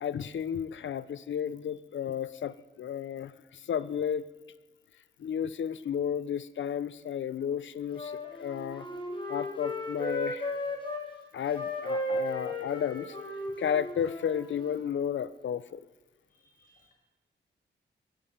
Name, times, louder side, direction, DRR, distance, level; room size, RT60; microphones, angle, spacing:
voice 1, 0.0-4.3 5.2-8.9 9.3-10.5 11.3-13.2 13.6-15.8, left 8 dB, 75° left, 16 dB, 0.6 m, -33 dB
Wind instrument woodwind instrument, 7.9-11.0 11.5-14.9, left 1 dB, 25° left, 4.9 m, -35 dB
voice 2, 16.3-16.9, right 1 dB, 45° left, -2 dB, 5.5 m, -66 dB
21.0 x 7.5 x 6.6 m, 1.2 s
cardioid pair, 85°, 20 cm